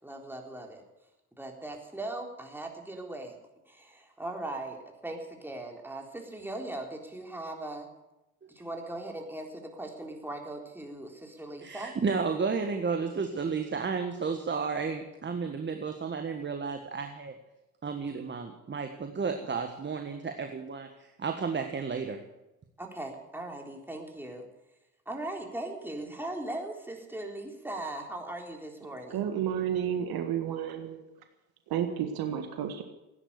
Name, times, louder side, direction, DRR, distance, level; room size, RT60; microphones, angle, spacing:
voice 1, 0.0-0.8 1.4-3.4 3.7-7.9 8.5-11.9 22.8-24.5 25.1-29.2, right 2 dB, 5° right, 1 dB, 3.7 m, -39 dB
voice 2, 11.6-17.3 17.8-22.2, right 5 dB, 25° right, 5 dB, 1.6 m, -32 dB
voice 3, 29.1-31.0 31.7-32.8, right 9 dB, 55° right, 6 dB, 1.7 m, -31 dB
16.5 x 9.9 x 8.3 m, 0.97 s
hypercardioid pair, 65°, 43 cm